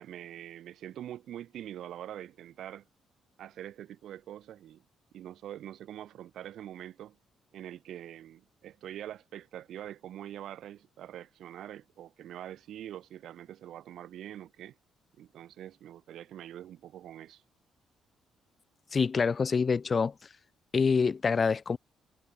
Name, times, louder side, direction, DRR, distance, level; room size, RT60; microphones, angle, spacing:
voice 1, 0.0-2.9 3.4-4.8 5.1-7.2 7.5-14.7 15.2-17.4, right 11 dB, 75° right, 6.7 m, -44 dB
voice 2, 18.9-20.1 20.7-21.8, left 5 dB, 40° left, 0.4 m, -26 dB
cardioid pair, 90°, 0 cm